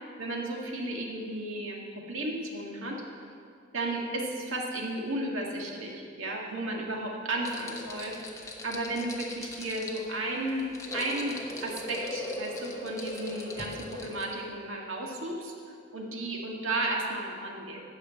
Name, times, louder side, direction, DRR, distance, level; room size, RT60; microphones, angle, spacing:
voice 1, 0.2-3.0 3.7-8.2 8.6-10.7 10.9-15.5 15.9-17.8, right 2 dB, 90° right, -1 dB, 2.0 m, -33 dB
sound 1, 7.4-14.5, left 2 dB, 15° left, 1.1 m, -39 dB
13.0 x 5.1 x 8.9 m, 2.3 s
head